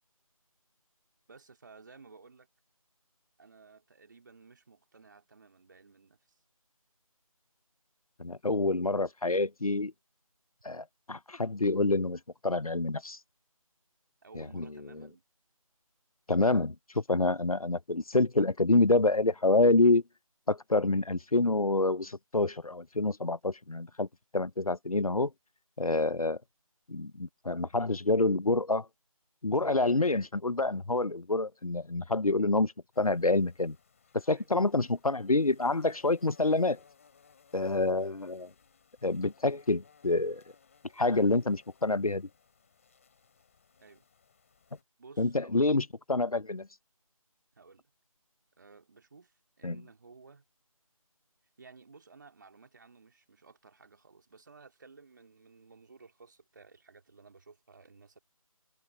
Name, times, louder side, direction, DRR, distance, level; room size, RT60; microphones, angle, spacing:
voice 1, 1.3-2.5 3.4-6.4 14.2-15.2 34.3-34.5 43.8-44.1 45.0-45.7 47.5-47.9 48.6-50.4 51.6-58.2, right 4 dB, 35° right, 3.1 m, -56 dB
voice 2, 8.2-9.9 10.6-13.2 14.4-14.7 16.3-20.0 20.5-24.1 24.3-25.3 25.8-26.4 26.9-28.9 29.4-33.8 34.3-36.8 37.5-38.5 39.0-40.4 41.0-42.3 45.2-46.7 49.6-49.8, left 2 dB, 80° left, 0.9 m, -27 dB
sound 1, 32.9-44.8, left 6 dB, 25° left, 3.4 m, -64 dB
figure-of-eight pair, 165°, 18 cm